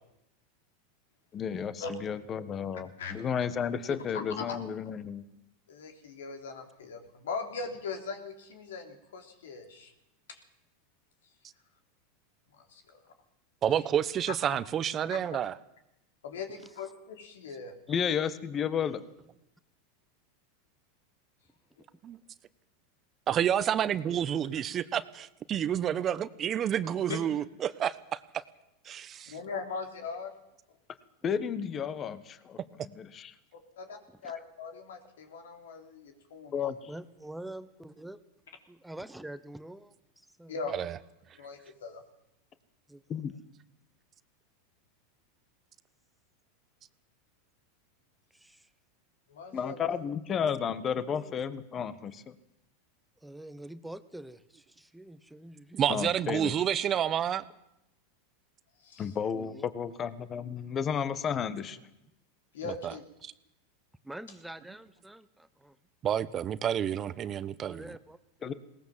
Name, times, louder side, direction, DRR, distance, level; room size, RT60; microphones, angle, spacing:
voice 1, 1.3-5.2 17.9-19.0 31.2-33.3 36.5-36.9 43.1-43.3 49.5-52.3 55.9-56.5 59.0-61.8 68.4-68.5, left 7 dB, 30° left, 14 dB, 1.5 m, -32 dB
voice 2, 3.0-3.5 3.9-4.6 5.7-9.9 10.3-10.4 12.6-13.1 14.5-14.6 15.1-15.2 16.2-17.8 27.1-27.2 29.3-30.3 33.5-36.5 40.5-40.7 41.4-42.0 49.3-50.0 58.8-59.1 62.5-63.0, left 5 dB, 85° left, 6 dB, 3.7 m, -40 dB
voice 3, 13.6-15.5 22.0-22.2 23.3-28.4 28.8-29.3 40.7-41.0 55.8-57.4 62.7-62.9 63.2-63.3 66.0-67.8, right 9 dB, 35° right, 15 dB, 1.0 m, -29 dB
voice 4, 17.9-18.3 34.2-34.3 36.9-38.2 38.7-40.7 42.9-43.2 48.3-48.7 51.1-51.3 53.2-55.9 59.3-59.7 64.0-65.8 67.6-68.5, right 1 dB, 5° right, 12 dB, 1.1 m, -46 dB
21.0 x 18.5 x 7.4 m, 0.86 s
hypercardioid pair, 115°, 0 cm